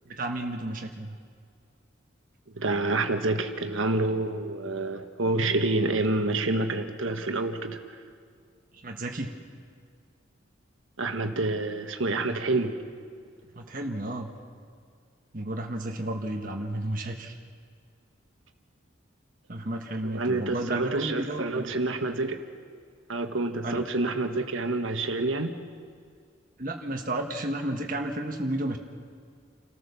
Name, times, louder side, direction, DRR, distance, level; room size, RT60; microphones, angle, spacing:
voice 1, 0.1-1.1 8.8-9.3 13.6-14.3 15.3-17.4 19.5-21.7 23.6-23.8 26.6-28.8, right 1 dB, 45° right, 2 dB, 1.5 m, -32 dB
voice 2, 2.5-7.8 11.0-12.8 20.0-22.4 23.1-25.5, right 2 dB, 80° right, 7 dB, 1.5 m, -28 dB
28.5 x 14.0 x 7.0 m, 2.2 s
head